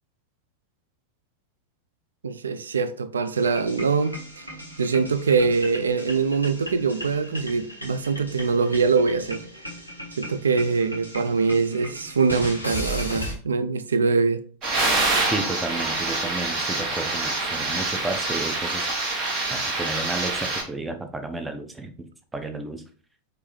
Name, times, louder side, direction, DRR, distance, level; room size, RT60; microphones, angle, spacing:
voice 1, 2.2-4.4 4.8-9.4 10.2-14.4, right 4 dB, 70° right, 0.3 m, -23 dB
sound 1, 3.3-13.3, equal, 90° right, 1.0 m, -36 dB
sound 2, 14.6-20.6, right 2 dB, 35° right, 1.0 m, -26 dB
voice 2, 15.3-19.2 19.5-22.8, right 2 dB, 10° right, 0.5 m, -32 dB
4.6 x 2.6 x 3.1 m
figure-of-eight pair, 90°, 0 cm